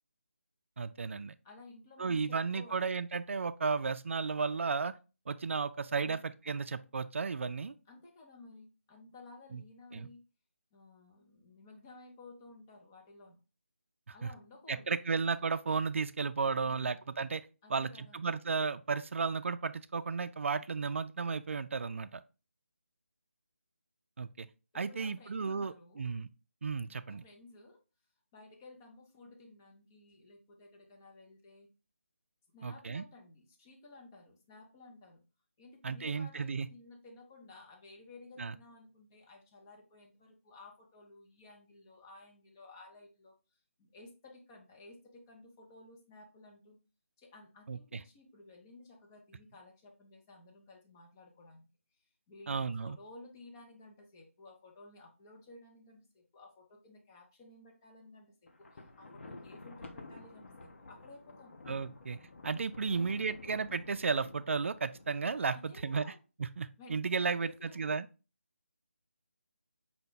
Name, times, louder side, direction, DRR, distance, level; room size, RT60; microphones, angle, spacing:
voice 1, 0.8-1.3 2.0-4.9 5.3-7.7 9.5-9.6 9.9-10.1 14.2-14.3 14.7-17.4 17.7-22.2 24.2-24.5 24.7-26.3 26.6-27.2 32.6-33.0 35.8-36.7 38.4-38.5 47.7-48.0 52.5-53.0 61.7-62.2 62.4-66.0 66.4-68.1, right 5 dB, 60° right, 0.3 m, -34 dB
voice 2, 1.4-2.9 6.0-6.3 7.9-10.2 10.7-13.4 14.1-15.1 16.6-17.0 17.6-18.2 24.7-26.1 26.8-27.8 28.3-31.7 32.5-35.2 35.6-43.3 43.8-46.8 47.2-51.7 52.3-61.6 62.9-63.5 65.5-66.2 66.8-68.0, left 2 dB, 15° left, 0.5 m, -55 dB
Thunder, 58.5-65.7, left 2 dB, 60° left, 0.7 m, -51 dB
5.6 x 2.1 x 3.8 m
figure-of-eight pair, 170°, 7 cm